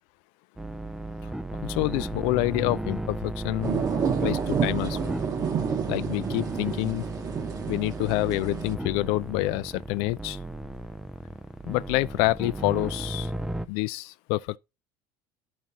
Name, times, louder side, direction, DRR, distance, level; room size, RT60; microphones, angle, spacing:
sound 1, 0.6-13.7, right 1 dB, 5° right, 0.4 m, -35 dB
voice 1, 1.6-3.8 4.2-5.0 5.9-7.1 7.7-10.4 11.7-13.3 13.7-14.6, left 20 dB, 75° left, 0.4 m, -27 dB
sound 2, 3.6-8.7, right 7 dB, 40° right, 1.0 m, -30 dB
11.0 x 5.3 x 2.8 m
supercardioid pair, 115°, 10 cm